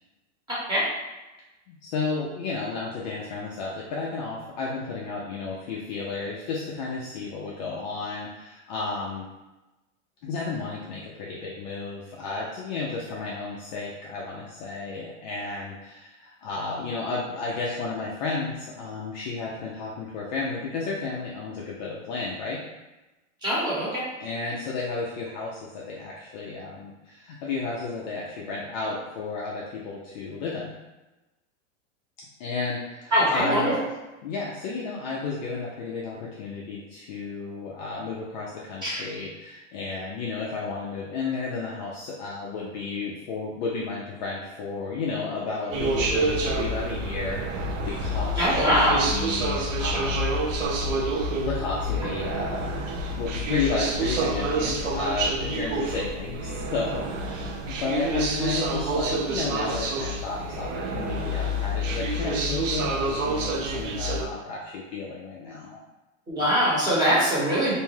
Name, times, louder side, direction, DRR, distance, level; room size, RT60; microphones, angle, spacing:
voice 1, 0.5-0.8 23.4-24.0 33.1-33.7 38.8-39.0 48.3-49.1 66.3-67.7, equal, 10° right, -8 dB, 0.9 m, -22 dB
voice 2, 1.7-9.3 10.2-22.6 24.2-30.7 32.4-33.7 34.2-48.4 48.7-50.3 51.4-52.9 53.2-65.8, left 4 dB, 40° left, -4 dB, 0.4 m, -32 dB
sound 1, 45.7-64.3, right 1 dB, 90° right, 0.6 m, -28 dB
2.6 x 2.2 x 3.2 m, 1.0 s
supercardioid pair, 150°, 37 cm